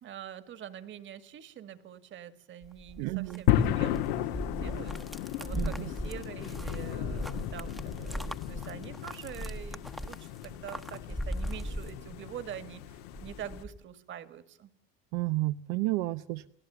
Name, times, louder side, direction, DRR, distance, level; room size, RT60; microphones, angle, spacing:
voice 1, 0.0-4.9 5.4-14.7, right 10 dB, 40° right, 14 dB, 1.8 m, -45 dB
sound 1, 2.6-12.5 12.9-13.8, equal, ahead, 1.0 m, -39 dB
voice 2, 3.0-3.4 5.5-5.7 15.1-16.5, right 19 dB, 80° right, 10 dB, 0.8 m, -31 dB
sound 2, 3.5-13.6, left 12 dB, 90° left, 1.8 m, -34 dB
29.5 x 17.5 x 7.0 m, 0.76 s
cardioid pair, 145°, 30 cm